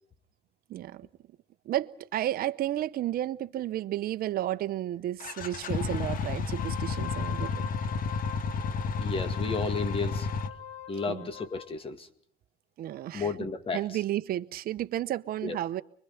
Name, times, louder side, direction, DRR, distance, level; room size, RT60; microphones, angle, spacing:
voice 1, 0.7-1.1 1.6-7.7 11.1-11.3 12.8-13.5 13.7-15.8, right 13 dB, 60° right, 0.9 m, -32 dB
sound 1, 5.2-10.5, left 5 dB, 55° left, 1.5 m, -31 dB
Wind instrument woodwind instrument, 6.4-11.7, left 10 dB, 80° left, 1.4 m, -43 dB
voice 2, 9.0-10.3 10.9-12.1 13.1-13.8 15.4-15.6, left 4 dB, 35° left, 2.1 m, -33 dB
25.0 x 22.5 x 5.9 m
cardioid pair, 110°, 17 cm